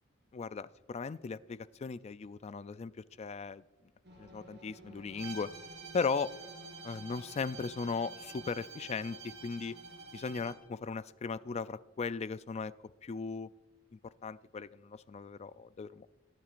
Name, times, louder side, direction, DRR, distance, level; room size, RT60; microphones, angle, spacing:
voice 1, 0.3-3.6 4.2-5.5 5.9-6.3 6.8-9.8 10.1-12.7 13.0-13.5 14.2-16.1, left 5 dB, 30° left, 16 dB, 0.3 m, -37 dB
sound 1, 4.0-10.6, equal, 60° right, 3.5 m, -55 dB
Bowed string instrument, 5.2-10.6, right 5 dB, 90° right, 3.3 m, -49 dB
20.5 x 8.9 x 2.5 m, 1.2 s
head